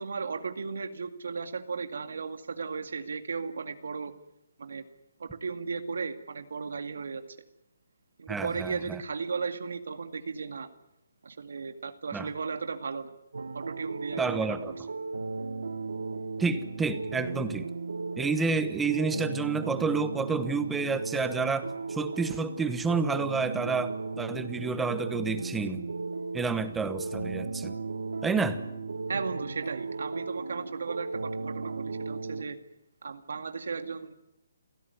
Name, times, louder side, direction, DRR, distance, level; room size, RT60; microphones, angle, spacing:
voice 1, 0.0-4.1 4.6-4.9 5.2-7.2 8.2-10.7 11.2-13.1 13.5-14.6 29.1-32.6 33.0-34.1, right 5 dB, 70° right, 8 dB, 2.2 m, -35 dB
voice 2, 8.3-9.0 12.1-12.3 14.2-14.7 16.4-17.7 18.2-25.8 26.3-27.7 28.2-28.6, right 4 dB, 5° right, 12 dB, 1.1 m, -30 dB
sound 1, 13.3-32.4, right 3 dB, 85° right, 1.8 m, -36 dB
28.5 x 16.5 x 9.6 m, 0.87 s
hypercardioid pair, 165°, 0 cm